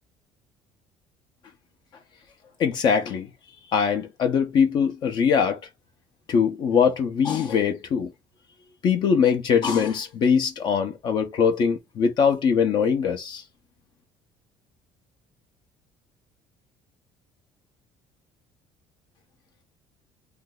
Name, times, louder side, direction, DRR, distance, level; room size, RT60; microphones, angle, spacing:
voice 1, 2.6-3.3 3.7-5.6 6.3-8.1 8.8-13.4, left 6 dB, 50° left, 0.7 m, -22 dB
2.6 x 2.3 x 3.7 m
cardioid pair, 130°, 10 cm